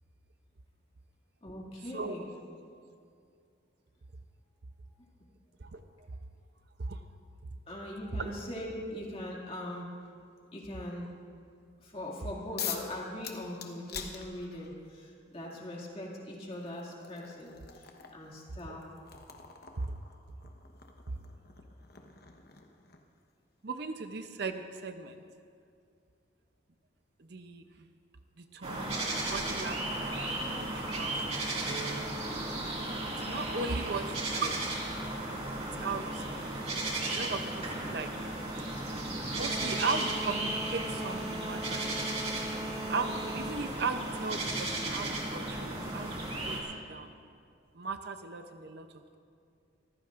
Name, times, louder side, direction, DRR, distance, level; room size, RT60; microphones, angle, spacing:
voice 1, 1.4-2.2 7.7-9.9 10.5-11.1 11.8-18.9, left 1 dB, 30° left, -3 dB, 2.3 m, -41 dB
sound 1, 12.6-12.9 13.2-14.8 15.9-16.0 16.5-23.2, left 8 dB, 50° left, 1.1 m, -44 dB
voice 2, 23.6-25.2 27.2-27.9 28.4-31.4 31.7-32.1 33.2-34.7 35.8-36.5 37.1-38.1 39.3-42.1 42.9-46.2 46.5-47.1 47.7-48.9, right 4 dB, 55° right, 8 dB, 0.6 m, -37 dB
sound 2, 28.6-46.6, right 2 dB, 30° right, 2.2 m, -35 dB
25.5 x 15.0 x 2.5 m, 2.4 s
head